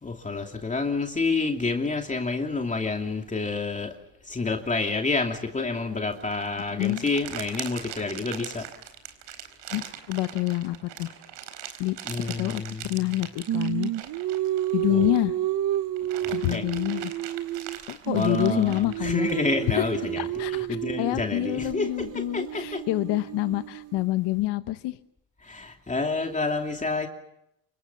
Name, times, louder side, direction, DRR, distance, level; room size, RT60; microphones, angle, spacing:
voice 1, 0.0-3.9 4.3-8.7 12.0-13.1 14.8-15.1 16.2-16.7 18.1-22.8 25.4-27.1, left 3 dB, 15° left, 3 dB, 2.7 m, -29 dB
sound 1, 6.1-15.4 15.7-19.9, right 11 dB, 75° right, 4.4 m, -41 dB
voice 2, 6.7-7.0 9.7-11.1 11.8-13.9 14.7-15.3 16.3-17.1 17.9-19.3 19.7-19.8 20.2-20.7 21.0-25.0, left 16 dB, 70° left, 10 dB, 1.2 m, -27 dB
Singing, 13.5-17.8 18.1-24.1, right 13 dB, 50° right, 1.2 m, -31 dB
28.5 x 24.5 x 6.9 m, 0.78 s
cardioid pair, 115°, 43 cm